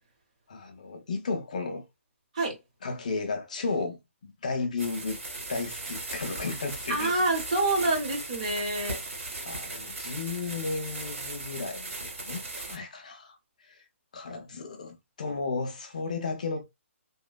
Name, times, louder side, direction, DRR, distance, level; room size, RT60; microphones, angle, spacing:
voice 1, 0.5-1.8 2.8-5.2 5.5-7.1 9.4-13.8 14.1-16.6, left 4 dB, 30° left, 0.4 m, -34 dB
sound 1, 4.8-12.8, right 2 dB, 75° right, 1.7 m, -38 dB
voice 2, 6.9-9.0, right 2 dB, 30° right, 0.8 m, -27 dB
2.9 x 2.1 x 2.2 m
hypercardioid pair, 180°, 7 cm